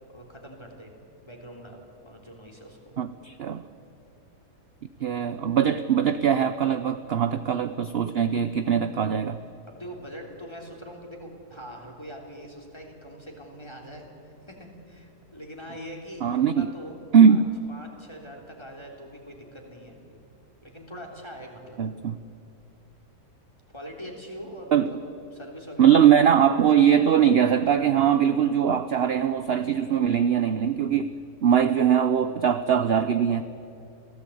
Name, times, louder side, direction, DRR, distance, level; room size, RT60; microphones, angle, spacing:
voice 1, 0.1-0.9 1.2-3.0 9.7-17.0 17.3-17.4 17.7-20.0 20.6-21.8 23.7-25.0 25.3-26.0, equal, 15° left, 1 dB, 3.3 m, -42 dB
voice 2, 3.0-3.6 5.0-9.4 16.2-16.7 17.1-17.5 21.8-22.2 24.7-24.9 25.8-31.1 31.4-33.4, right 8 dB, 55° right, 11 dB, 0.7 m, -21 dB
27.0 x 16.5 x 8.5 m, 2.7 s
omnidirectional pair, 1.7 m